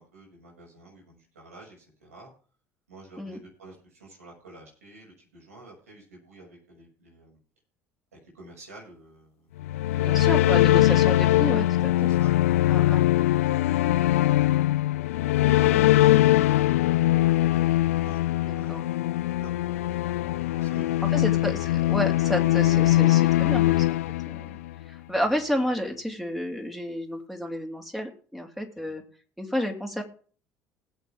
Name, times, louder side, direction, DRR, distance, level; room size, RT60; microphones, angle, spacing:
voice 1, 0.0-2.3 2.9-7.4 8.1-9.7 10.2-10.7 12.0-12.8 13.5-14.7 15.4-15.9 18.0-21.5 24.5-24.6 28.8-28.9, right 2 dB, 80° right, -2 dB, 6.8 m, -50 dB
sound 1, 9.6-24.8, left 15 dB, 75° left, 0.5 m, -22 dB
voice 2, 10.0-11.9 12.7-13.1 18.7-18.8 21.0-23.8 24.3-24.5 25.1-29.0 29.4-30.0, equal, 5° right, 2 dB, 3.5 m, -31 dB
20.0 x 8.3 x 3.7 m, 0.41 s
figure-of-eight pair, 60°, 8 cm